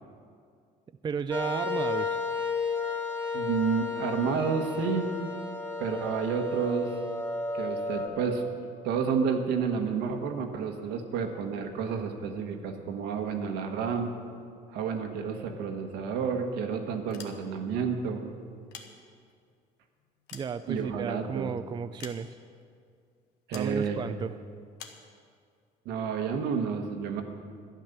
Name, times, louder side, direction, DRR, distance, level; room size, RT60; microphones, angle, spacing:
voice 1, 1.0-2.2 20.3-22.3 23.5-24.4, right 6 dB, 25° right, 11 dB, 0.4 m, -33 dB
sound 1, 1.3-8.1, left 4 dB, 10° left, 2.3 m, -33 dB
voice 2, 3.3-5.1 5.8-7.0 7.5-8.4 8.8-14.1 14.7-18.2 20.7-21.5 23.5-24.2 25.8-27.2, right 6 dB, 90° right, 4 dB, 1.4 m, -30 dB
sound 2, 17.0-17.8 18.5-19.5 20.0-21.2 22.0-22.6 23.5-23.8 24.8-25.1, left 7 dB, 80° left, 1.2 m, -47 dB
11.5 x 10.5 x 6.7 m, 2.2 s
cardioid pair, 110°, 17 cm